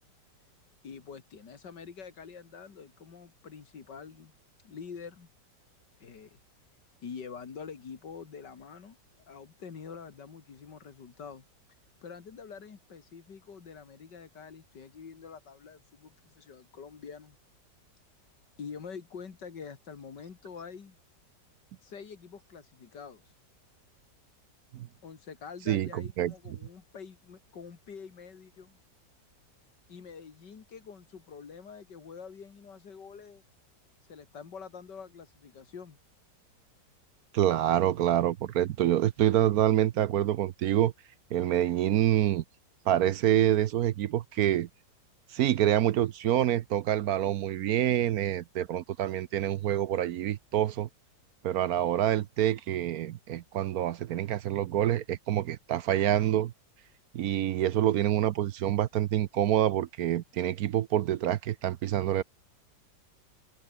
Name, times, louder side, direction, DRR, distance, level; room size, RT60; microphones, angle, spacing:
voice 1, 0.8-4.3 4.6-5.3 6.0-6.4 7.0-9.0 9.3-11.4 12.0-17.4 18.6-21.0 21.8-23.2 25.0-28.8 29.9-33.4 34.1-36.0, left 6 dB, 80° left, 2.8 m, -46 dB
voice 2, 25.7-26.3 37.3-40.9 41.3-42.4 42.9-44.7 45.3-50.9 51.4-56.5 57.1-62.2, right 12 dB, 65° right, 1.0 m, -26 dB
open air
omnidirectional pair, 1.8 m